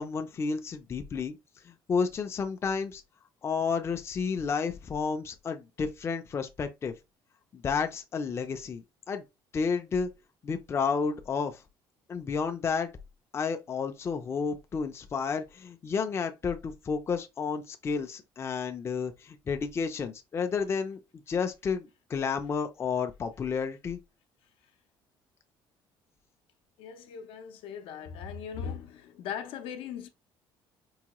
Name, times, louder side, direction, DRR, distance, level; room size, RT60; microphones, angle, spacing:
voice 1, 0.0-1.4 1.6-3.0 3.4-6.9 7.5-9.2 9.5-10.1 10.4-11.6 12.1-12.9 13.3-21.0 21.3-24.0, left 5 dB, 30° left, 0.5 m, -31 dB
voice 2, 26.8-30.1, left 7 dB, 75° left, 0.6 m, -39 dB
4.6 x 2.2 x 2.9 m
cardioid pair, 130°, 9 cm